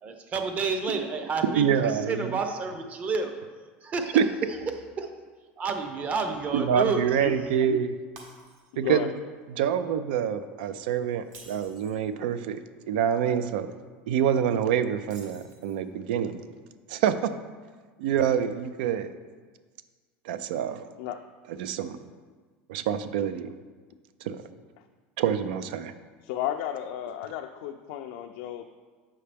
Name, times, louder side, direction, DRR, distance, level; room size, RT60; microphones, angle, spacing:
voice 1, 0.0-3.3 3.8-4.2 5.0-5.1 5.6-7.0, right 4 dB, 30° right, 6 dB, 0.7 m, -30 dB
voice 2, 1.5-2.4 4.1-4.3 6.5-7.9 8.8-9.1 9.6-13.7 14.1-16.4 16.9-17.3 18.0-19.1 20.2-20.8 21.6-22.0 22.7-23.5 24.2-24.4 25.2-25.9, right 8 dB, 85° right, 11 dB, 0.4 m, -26 dB
voice 3, 7.2-7.8 8.7-9.1 21.0-21.2 26.2-28.7, left 11 dB, 70° left, 5 dB, 0.4 m, -33 dB
Shatter, 8.2-8.9 9.4-9.6 11.2-12.0 15.0-15.9, right 3 dB, 55° right, 1.3 m, -51 dB
7.4 x 5.6 x 3.4 m, 1.5 s
supercardioid pair, 130°, 5 cm